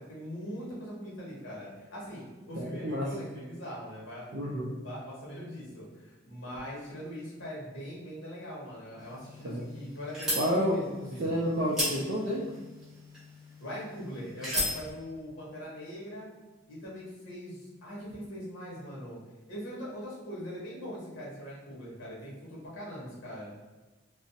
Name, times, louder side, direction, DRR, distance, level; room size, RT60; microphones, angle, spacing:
voice 1, 0.0-4.3 4.8-11.6 13.6-16.3 16.7-19.2 19.5-23.5, equal, 80° left, -5 dB, 0.9 m, -41 dB
voice 2, 2.6-3.1 4.3-4.8 9.4-9.7 10.4-10.8 11.2-12.5, equal, 60° right, -5 dB, 0.4 m, -30 dB
sound 1, 9.0-14.8, left 1 dB, 5° right, 0.8 m, -37 dB
2.4 x 2.0 x 2.6 m, 1.2 s
head